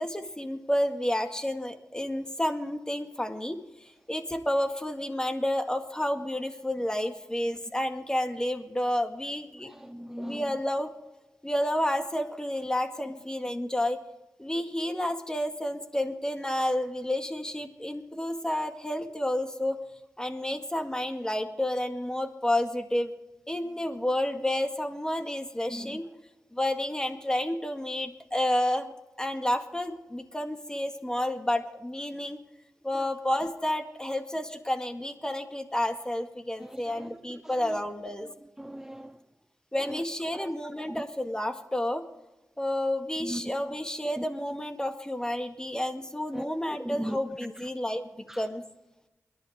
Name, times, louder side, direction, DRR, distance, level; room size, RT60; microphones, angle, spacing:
voice 1, 0.0-3.6 4.1-9.7 10.2-10.9 11.4-14.0 14.4-19.8 20.2-23.1 23.5-26.1 26.5-28.9 29.2-32.4 32.8-38.3 39.7-42.0 42.6-48.1 48.4-48.6, left 1 dB, 15° left, 1.9 m, -30 dB
voice 2, 9.7-10.5 25.7-25.9 36.6-37.2 37.6-37.8 38.6-39.1 40.3-40.5 40.9-41.0 43.2-43.4 44.2-44.3 46.3-46.5 46.8-47.2 48.3-48.4, equal, 10° right, 0.6 m, -38 dB
28.0 x 11.0 x 3.7 m
cardioid pair, 55°, 5 cm